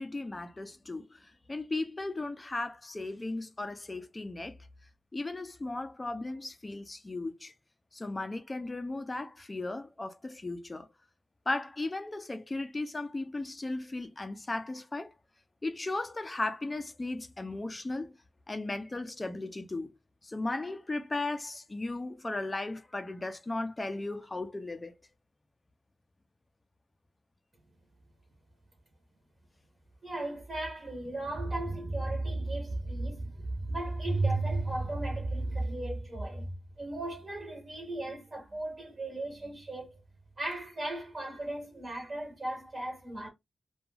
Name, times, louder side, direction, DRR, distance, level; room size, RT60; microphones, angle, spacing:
voice 1, 0.0-4.6 5.1-7.5 7.9-10.9 11.5-15.1 15.6-18.1 18.5-19.9 20.2-24.9, left 2 dB, 20° left, 0.4 m, -36 dB
voice 2, 30.0-40.0 40.4-43.3, right 2 dB, 30° right, 0.8 m, -35 dB
2.2 x 2.2 x 3.2 m
wide cardioid pair, 135°, 0 cm